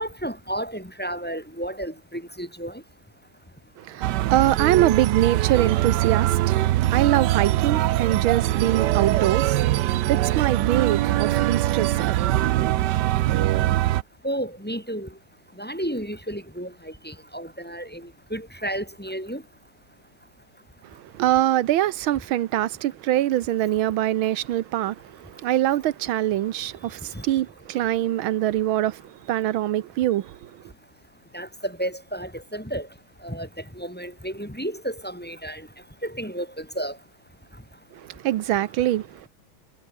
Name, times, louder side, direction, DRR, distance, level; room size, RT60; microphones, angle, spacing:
voice 1, 0.0-2.8 14.2-15.1 15.6-19.4 27.1-27.2 31.3-32.9 33.2-33.5 33.7-35.7 36.0-37.0, right 1 dB, 5° left, 2.3 m, -32 dB
voice 2, 3.8-12.7 20.8-30.6 37.9-39.3, right 13 dB, 90° right, 1.7 m, -24 dB
sound 1, 4.0-14.0, right 14 dB, 70° right, 1.1 m, -22 dB
omnidirectional pair, 2.2 m